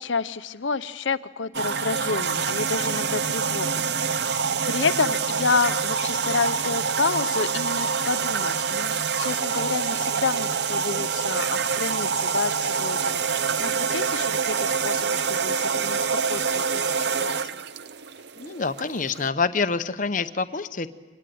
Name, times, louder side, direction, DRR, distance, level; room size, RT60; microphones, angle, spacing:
voice 1, 0.0-3.8 4.7-17.6, left 4 dB, 75° left, 13 dB, 0.8 m, -29 dB
sound 1, 1.5-19.3, right 6 dB, 55° right, 0.7 m, -26 dB
voice 2, 18.4-20.9, left 4 dB, 40° left, 11 dB, 0.7 m, -26 dB
25.0 x 19.0 x 9.4 m, 1.3 s
head